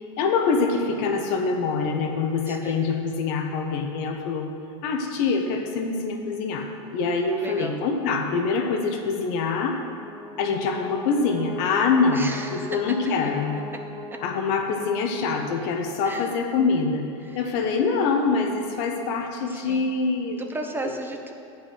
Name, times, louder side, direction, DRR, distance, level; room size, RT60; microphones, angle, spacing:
voice 1, 0.2-4.5 4.8-9.8 10.4-13.5 14.2-17.0 17.3-20.4, left 4 dB, 60° left, 4 dB, 1.2 m, -25 dB
voice 2, 2.5-2.8 7.4-7.8 12.1-13.0 13.2-13.3 13.7-13.8 14.1-14.2 16.0-16.4 17.2-17.5 19.5-19.9 20.4-21.3, right 2 dB, 15° right, 4 dB, 0.8 m, -35 dB
Brass instrument, 9.7-14.8, left 1 dB, 35° right, 1.7 m, -40 dB
8.3 x 5.7 x 7.9 m, 2.5 s
hypercardioid pair, 100°, 15 cm